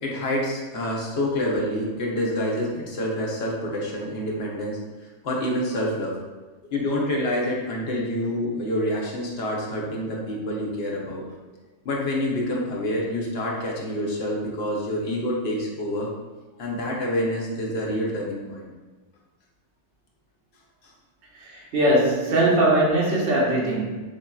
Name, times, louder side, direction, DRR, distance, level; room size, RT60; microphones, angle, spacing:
voice 1, 0.0-6.2 6.7-11.2 11.8-16.1 16.6-18.7, left 1 dB, 60° left, -3 dB, 1.0 m, -27 dB
voice 2, 21.3-23.9, right 1 dB, 70° right, -4 dB, 1.1 m, -21 dB
5.0 x 2.6 x 2.3 m, 1.3 s
omnidirectional pair, 1.2 m